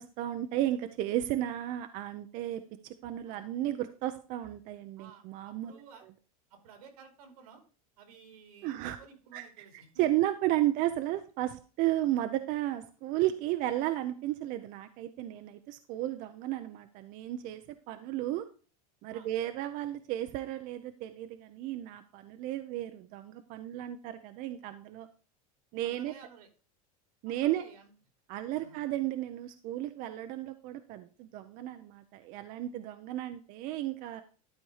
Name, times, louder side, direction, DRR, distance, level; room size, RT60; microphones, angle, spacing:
voice 1, 0.0-5.8 8.6-9.0 9.3-9.6 10.0-18.5 19.0-25.1 25.7-26.1 27.2-27.6 28.3-34.2, right 14 dB, 45° right, 9 dB, 0.7 m, -33 dB
voice 2, 3.2-3.6 5.0-6.0 6.5-7.6 8.0-10.2 12.0-12.1 19.1-19.3 25.8-26.5 27.3-27.9 28.5-28.8, right 6 dB, 90° right, 5 dB, 2.9 m, -54 dB
12.0 x 4.3 x 4.8 m, 0.38 s
supercardioid pair, 150°, 19 cm